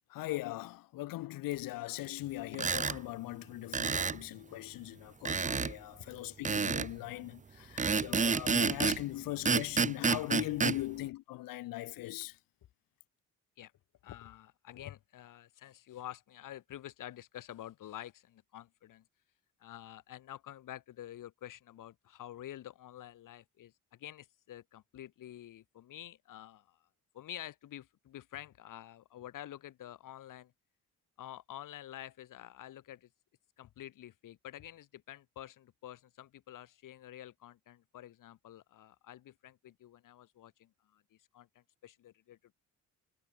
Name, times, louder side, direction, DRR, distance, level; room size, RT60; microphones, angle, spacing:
voice 1, 0.1-12.4, left 17 dB, 90° left, 1.8 m, -40 dB
sound 1, 2.5-3.0 3.7-4.2 5.2-5.7 6.4-6.9 7.8-9.0 9.4-10.8, right 5 dB, 25° right, 0.8 m, -29 dB
voice 2, 14.0-19.1 19.6-26.9 27.1-30.5 31.2-33.1 33.6-42.5, left 12 dB, 70° left, 2.7 m, -49 dB
cardioid pair, 100°, 33 cm